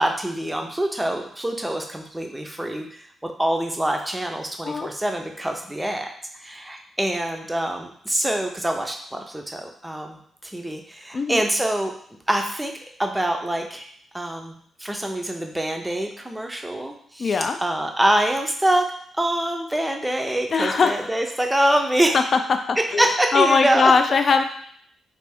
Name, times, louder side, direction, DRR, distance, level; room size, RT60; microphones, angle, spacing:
voice 1, 0.0-6.1 6.4-11.9 12.3-12.7 13.0-13.9 14.1-17.3 17.6-18.8 19.2-22.2 23.0-23.9, right 1 dB, 10° right, 3 dB, 0.5 m, -25 dB
voice 2, 11.1-11.5 17.2-17.6 20.5-21.1 22.1-22.4 22.7-24.4, left 5 dB, 45° left, 7 dB, 0.4 m, -20 dB
3.2 x 2.5 x 3.5 m, 0.63 s
cardioid pair, 105°, 0 cm